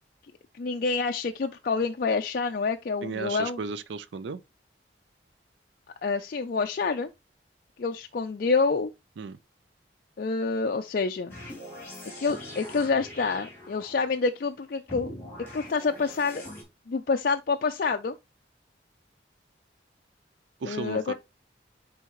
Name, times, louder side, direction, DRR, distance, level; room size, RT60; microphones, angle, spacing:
voice 1, 0.5-3.6 6.0-7.1 7.8-8.9 10.2-11.3 12.2-15.1 15.5-16.5 16.9-18.1 20.6-21.1, left 4 dB, 50° left, 0.4 m, -27 dB
voice 2, 3.0-4.4 9.2-9.4 20.6-21.1, right 5 dB, 75° right, 0.4 m, -34 dB
sound 1, 11.3-14.1 14.9-16.6, left 1 dB, 15° left, 2.9 m, -42 dB
9.3 x 3.5 x 3.0 m
head